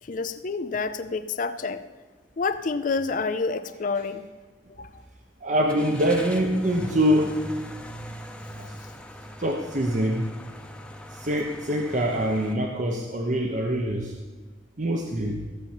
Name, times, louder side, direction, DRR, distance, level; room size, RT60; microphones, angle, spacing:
voice 1, 0.0-1.9 2.4-4.3 4.7-5.0, left 4 dB, 45° left, 11 dB, 0.5 m, -28 dB
sound 1, 2.4-2.6 3.1-3.2 5.7-12.5, equal, 5° left, 0.9 m, -42 dB
voice 2, 5.4-7.4 8.5-8.8 9.4-10.3 11.1-14.1 14.8-15.4, equal, 40° right, 2 dB, 1.0 m, -24 dB
15.5 x 7.1 x 7.3 m, 1.4 s
head